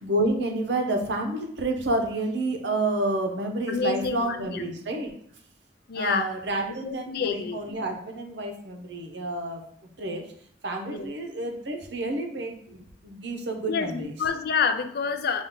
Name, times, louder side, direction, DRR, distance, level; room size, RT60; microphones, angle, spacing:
voice 1, 0.0-5.1 5.9-9.6 10.0-10.2 10.6-14.2, right 2 dB, 75° right, 2 dB, 0.8 m, -29 dB
voice 2, 3.7-4.6 5.9-6.3 6.7-7.6 10.9-11.1 13.7-15.4, left 5 dB, 60° left, 8 dB, 0.4 m, -28 dB
5.3 x 2.4 x 3.6 m, 0.62 s
head